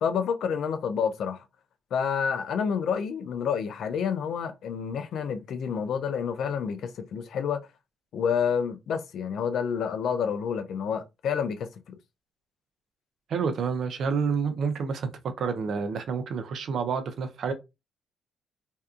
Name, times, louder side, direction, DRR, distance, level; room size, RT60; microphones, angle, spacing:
voice 1, 0.0-1.5 1.9-7.6 8.1-12.0, left 7 dB, 70° left, 0.4 m, -29 dB
voice 2, 13.3-15.1 15.4-17.5, right 5 dB, 65° right, 0.5 m, -28 dB
2.6 x 2.2 x 2.4 m
cardioid pair, 90°, 0 cm